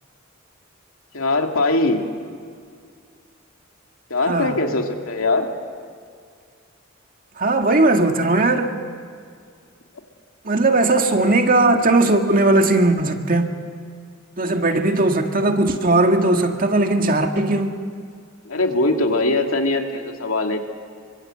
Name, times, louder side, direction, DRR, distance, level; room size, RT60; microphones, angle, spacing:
voice 1, 1.1-2.0 4.1-5.5 18.5-20.6, left 2 dB, 85° left, 3 dB, 2.5 m, -21 dB
voice 2, 4.3-4.6 7.4-8.7 10.4-13.5 14.4-17.8, right 2 dB, 45° right, 5 dB, 1.9 m, -18 dB
27.0 x 24.5 x 7.9 m, 2.2 s
head